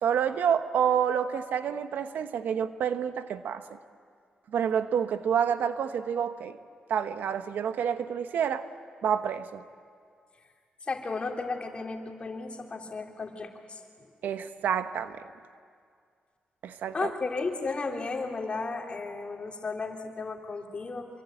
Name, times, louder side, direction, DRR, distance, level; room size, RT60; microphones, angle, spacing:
voice 1, 0.0-3.6 4.5-6.6 6.9-8.7 9.0-9.6 14.2-15.2 16.6-17.1, right 8 dB, 85° right, 10 dB, 1.1 m, -28 dB
voice 2, 10.8-13.8 16.9-21.1, left 3 dB, 40° left, 2 dB, 3.3 m, -34 dB
26.5 x 23.5 x 9.0 m, 2.2 s
cardioid pair, 90°, 3 cm